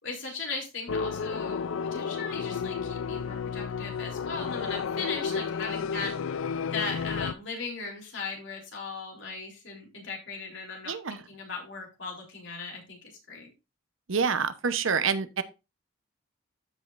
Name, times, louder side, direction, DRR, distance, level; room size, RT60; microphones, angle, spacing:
voice 1, 0.0-6.4 6.7-13.5, left 4 dB, 60° left, 3.5 m, -38 dB
sound 1, 0.9-7.3, left 6 dB, 80° left, 0.4 m, -32 dB
voice 2, 10.9-11.2 14.1-15.4, right 6 dB, 75° right, 0.8 m, -27 dB
14.0 x 5.2 x 2.5 m
head